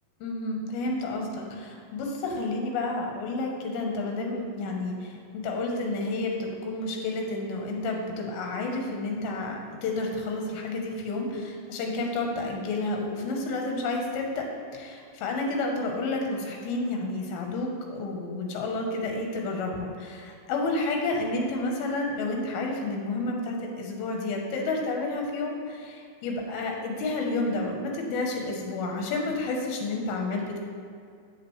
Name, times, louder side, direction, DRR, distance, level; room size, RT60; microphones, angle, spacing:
voice 1, 0.2-14.5 14.7-30.6, left 2 dB, 85° left, 1 dB, 2.8 m, -30 dB
8.3 x 6.5 x 3.1 m, 2.3 s
omnidirectional pair, 4.3 m